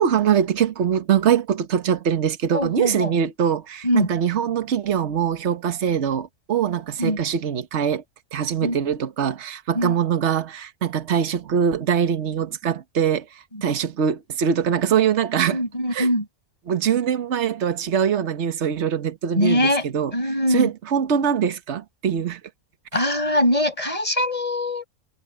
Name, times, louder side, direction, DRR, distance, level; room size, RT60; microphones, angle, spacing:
voice 1, 0.0-8.0 8.3-13.2 13.6-15.6 15.9-16.1 16.7-20.1 20.5-22.4, right 8 dB, 50° right, 1.4 m, -23 dB
voice 2, 2.5-3.1 3.8-4.1 7.0-7.2 8.6-8.8 9.7-10.0 13.5-13.6 15.5-16.3 19.4-19.9 20.1-20.7 22.9-24.8, left 1 dB, 20° left, 5.6 m, -22 dB
omnidirectional pair, 1.6 m